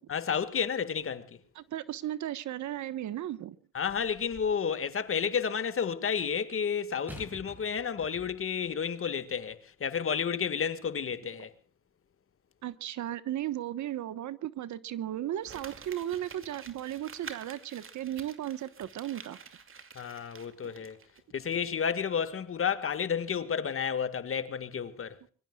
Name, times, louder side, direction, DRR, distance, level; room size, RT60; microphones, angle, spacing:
voice 1, 0.1-1.4 3.7-11.5 20.0-21.0 21.3-25.2, left 7 dB, 45° left, 1.9 m, -31 dB
voice 2, 1.5-3.6 12.6-19.4, right 12 dB, 70° right, 1.3 m, -35 dB
sound 1, 3.8-4.7 7.1-8.6 9.4-9.5, left 1 dB, 5° right, 7.2 m, -49 dB
Crumpling crinkling, 15.4-21.2 21.5-21.6, right 6 dB, 45° right, 2.5 m, -49 dB
25.0 x 22.5 x 2.4 m
cardioid pair, 90°, 30 cm